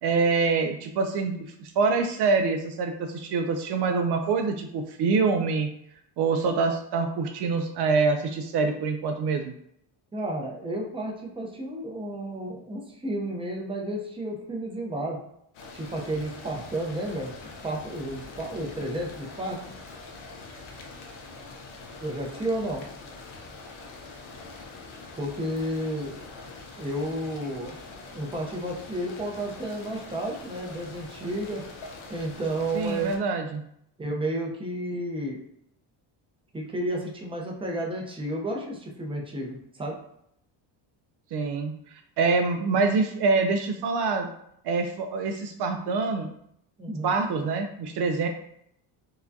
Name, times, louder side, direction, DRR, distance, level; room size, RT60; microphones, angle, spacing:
voice 1, 0.0-5.7 6.2-9.5 32.7-33.6 41.3-44.3 44.6-46.3 47.0-48.3, right 4 dB, 60° right, 5 dB, 0.5 m, -25 dB
voice 2, 10.1-15.2 15.7-17.3 17.6-19.7 22.0-22.9 25.2-26.2 26.8-27.8 28.1-31.6 32.1-33.1 34.0-35.4 36.5-40.0 46.8-47.2, right 1 dB, 10° right, -1 dB, 0.6 m, -32 dB
sound 1, 15.5-33.2, left 3 dB, 85° left, 0.8 m, -44 dB
4.7 x 2.3 x 2.7 m, 0.73 s
cardioid pair, 115°, 47 cm